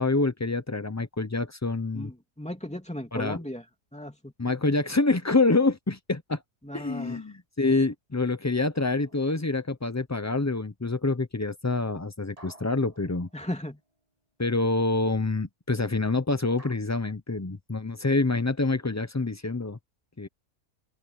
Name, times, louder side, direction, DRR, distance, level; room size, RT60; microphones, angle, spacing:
voice 1, 0.0-2.1 3.1-3.4 4.4-6.4 6.7-13.3 14.4-19.8 20.2-20.3, left 3 dB, 25° left, 0.4 m, -26 dB
voice 2, 1.9-3.6 3.9-4.3 6.6-7.2 13.3-13.8, left 1 dB, 5° left, 2.7 m, -36 dB
sound 1, 8.7-10.0 12.4-14.0 16.6-16.8, right 1 dB, 25° right, 8.0 m, -55 dB
open air
omnidirectional pair, 1.5 m